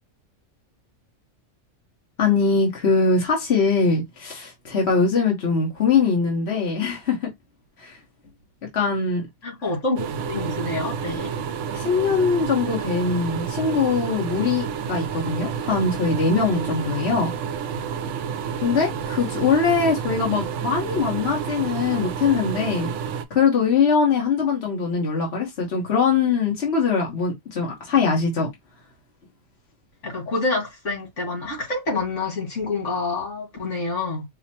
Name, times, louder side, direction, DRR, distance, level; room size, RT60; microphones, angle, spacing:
voice 1, 2.2-7.3 7.8-8.0 8.7-9.3 11.7-17.3 18.6-22.9 23.3-28.5, left 5 dB, 60° left, 1.5 m, -22 dB
voice 2, 9.4-11.3 30.0-34.3, left 3 dB, 90° left, 2.2 m, -27 dB
sound 1, 10.0-23.2, right 7 dB, 80° right, 0.9 m, -30 dB
5.5 x 2.1 x 2.9 m
omnidirectional pair, 1.2 m